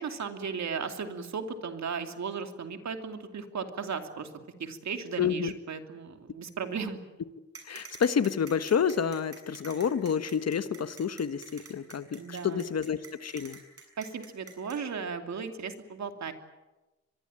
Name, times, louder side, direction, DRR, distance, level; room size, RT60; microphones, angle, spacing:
voice 1, 0.0-4.3 4.6-7.0 12.2-12.6 14.0-16.3, right 5 dB, 70° right, 6 dB, 2.8 m, -36 dB
voice 2, 5.2-5.5 7.7-13.6, left 7 dB, 60° left, 12 dB, 1.4 m, -29 dB
sound 1, 7.5-14.8, right 5 dB, 50° right, 7.5 m, -47 dB
24.0 x 22.0 x 9.0 m, 1.1 s
cardioid pair, 100°, 29 cm